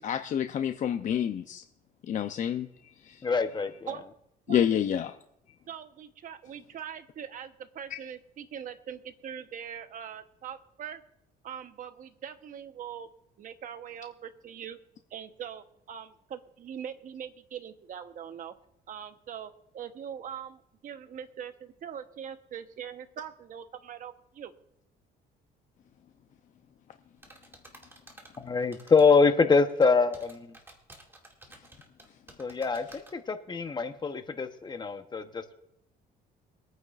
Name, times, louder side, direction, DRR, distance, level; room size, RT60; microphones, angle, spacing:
voice 1, 0.0-1.6 2.1-2.7 3.1-3.2 4.5-5.1, left 9 dB, 50° left, 7 dB, 0.6 m, -28 dB
voice 2, 3.2-3.9 28.4-30.5 32.4-35.4, left 4 dB, 25° left, 8 dB, 0.9 m, -25 dB
voice 3, 5.7-11.0 11.4-13.1 13.4-14.8 15.1-18.5 18.9-24.5, right 8 dB, 50° right, 9 dB, 1.0 m, -42 dB
sound 1, 27.2-29.1 29.5-33.1, right 1 dB, 15° right, 2.3 m, -52 dB
24.0 x 9.3 x 2.5 m, 0.77 s
cardioid pair, 110°, 17 cm